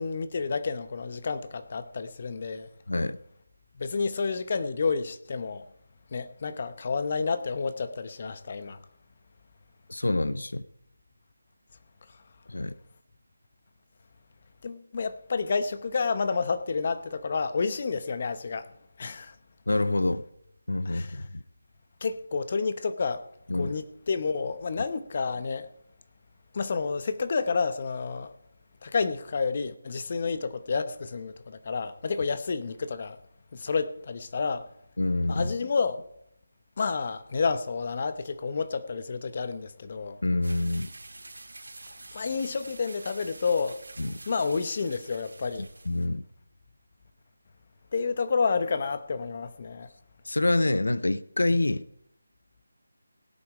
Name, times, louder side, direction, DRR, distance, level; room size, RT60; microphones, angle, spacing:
voice 1, 0.0-2.7 3.8-5.6 6.1-8.8 14.6-18.7 19.0-19.4 20.8-21.2 22.0-23.2 23.5-25.7 26.5-28.3 28.8-33.2 33.5-34.7 35.3-36.1 36.8-40.2 42.1-43.8 44.3-45.7 47.9-49.9, left 4 dB, 40° left, 0.9 m, -30 dB
voice 2, 2.9-3.2 9.9-10.6 12.5-12.7 19.7-20.2 20.7-21.3 23.5-23.8 35.0-35.5 40.2-40.9 44.0-44.1 45.9-46.2 50.2-51.8, left 2 dB, 80° left, 0.6 m, -26 dB
sound 1, 40.4-46.1, right 2 dB, 75° right, 2.4 m, -46 dB
17.0 x 8.7 x 5.0 m
figure-of-eight pair, 165°, 0 cm